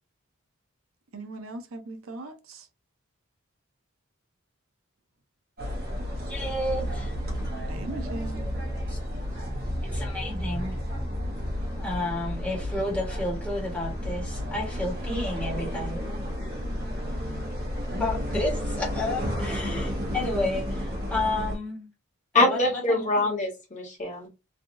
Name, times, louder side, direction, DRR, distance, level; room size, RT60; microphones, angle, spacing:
voice 1, 1.1-2.7 7.7-8.5, right 2 dB, 90° right, 0.6 m, -38 dB
sound 1, 5.6-21.6, equal, 50° right, 1.2 m, -32 dB
voice 2, 6.2-7.1 8.9-9.0 9.9-10.8 11.8-16.0 17.9-21.9 22.3-23.1, left 2 dB, 5° left, 1.3 m, -31 dB
voice 3, 22.3-24.3, left 2 dB, 35° left, 1.5 m, -24 dB
3.3 x 2.6 x 2.6 m
head